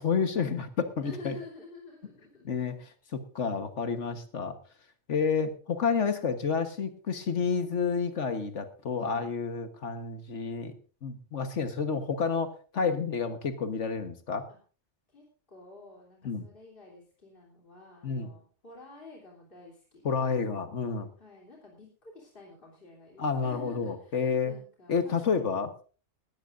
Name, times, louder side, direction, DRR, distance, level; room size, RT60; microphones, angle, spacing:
voice 1, 0.0-1.3 2.4-4.6 5.1-10.7 11.0-14.5 16.2-16.5 18.0-18.3 20.0-21.1 23.2-24.5 24.9-25.7, left 5 dB, 70° left, 9 dB, 1.6 m, -30 dB
voice 2, 1.0-2.5 9.0-9.4 12.9-13.4 14.5-14.6 15.1-20.4 21.2-25.7, left 2 dB, 45° left, -2 dB, 3.5 m, -50 dB
19.0 x 15.0 x 2.6 m, 0.38 s
omnidirectional pair, 1.3 m